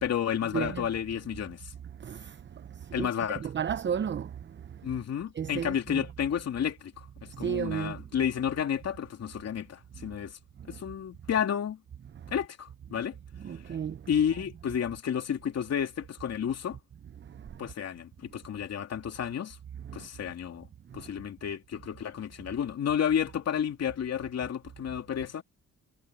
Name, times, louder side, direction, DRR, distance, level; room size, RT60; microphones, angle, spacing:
voice 1, 0.0-1.7 2.9-3.4 4.8-10.3 10.7-11.8 12.3-13.2 14.1-16.8 17.6-19.6 19.9-20.7 20.9-25.4, left 8 dB, 55° left, 3.0 m, -31 dB
voice 2, 0.5-0.9 2.0-2.3 3.0-3.1 3.4-4.3 5.4-6.0 7.4-8.0 13.4-14.0 19.9-20.0, right 8 dB, 40° right, 0.8 m, -32 dB
cardioid pair, 90°, 30 cm